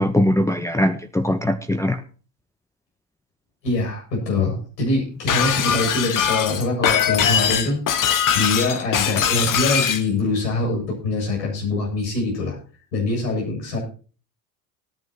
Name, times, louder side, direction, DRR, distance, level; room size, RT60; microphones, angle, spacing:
voice 1, 0.0-2.0, left 1 dB, 5° left, 5 dB, 0.9 m, -21 dB
voice 2, 3.6-12.6 12.9-13.8, left 2 dB, 85° left, -1 dB, 7.7 m, -24 dB
Shatter, 5.3-10.0, left 8 dB, 40° left, 1.5 m, -21 dB
19.0 x 10.5 x 3.0 m, 0.38 s
hypercardioid pair, 75°, 49 cm